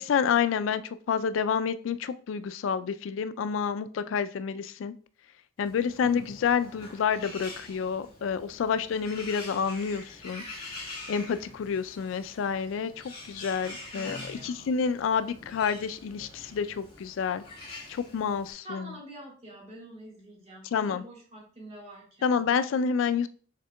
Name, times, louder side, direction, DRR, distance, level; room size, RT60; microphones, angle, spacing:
voice 1, 0.0-4.9 5.6-10.4 11.1-12.9 13.2-17.4 17.9-18.9 20.7-21.0 22.2-23.3, left 6 dB, 85° left, 13 dB, 0.3 m, -29 dB
Bird, 5.6-18.5, left 2 dB, 30° left, 1.9 m, -45 dB
voice 2, 13.9-14.8 18.6-22.4, right 1 dB, 35° right, -2 dB, 1.6 m, -46 dB
6.5 x 3.5 x 2.2 m, 0.42 s
head